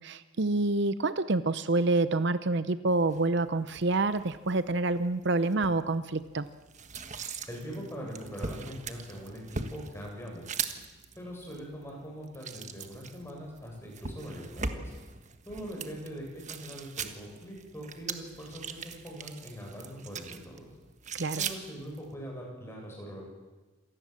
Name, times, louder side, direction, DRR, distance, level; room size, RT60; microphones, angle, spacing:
voice 1, 0.0-6.5 21.1-21.4, right 2 dB, 55° right, 13 dB, 0.7 m, -27 dB
sound 1, 3.1-22.1, right 5 dB, 35° right, 1.5 m, -41 dB
voice 2, 7.5-10.5 11.1-14.9 15.4-20.7 21.3-23.3, equal, 10° left, -1 dB, 8.0 m, -42 dB
27.5 x 19.0 x 7.7 m, 1.2 s
head